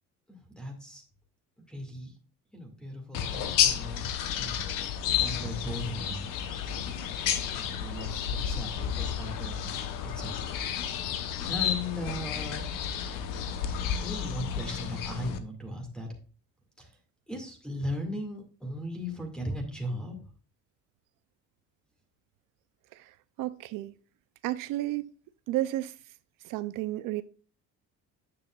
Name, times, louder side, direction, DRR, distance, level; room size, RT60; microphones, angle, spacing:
voice 1, 0.3-1.0 1.7-2.1 2.5-4.0 4.4-6.6 7.5-10.5 11.0-12.6 13.6-16.1 16.8-17.0 17.3-20.3, left 1 dB, 5° left, 2.1 m, -38 dB
sound 1, 3.1-15.4, left 9 dB, 90° left, 1.0 m, -31 dB
voice 2, 23.4-23.9 24.4-25.0 25.5-25.9 26.4-27.2, right 15 dB, 80° right, 0.6 m, -31 dB
9.3 x 7.0 x 2.4 m
cardioid pair, 145°, 31 cm